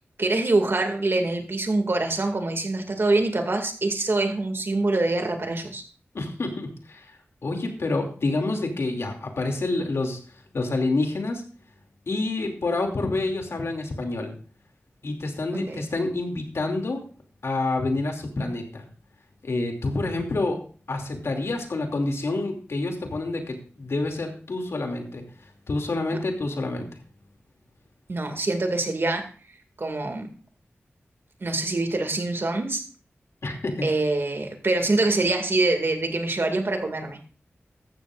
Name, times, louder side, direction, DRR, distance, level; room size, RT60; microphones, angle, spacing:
voice 1, 0.2-5.8 15.5-15.8 28.1-29.3 29.8-30.3 31.4-32.8 33.8-37.2, right 2 dB, 55° right, 5 dB, 2.2 m, -25 dB
voice 2, 6.1-10.2 10.5-11.4 12.1-14.3 15.0-17.0 17.4-18.8 19.4-20.6 20.9-25.2 25.7-27.0 33.4-33.9, left 2 dB, 80° left, 3 dB, 2.6 m, -28 dB
14.5 x 12.5 x 2.5 m, 0.40 s
cardioid pair, 50°, 5 cm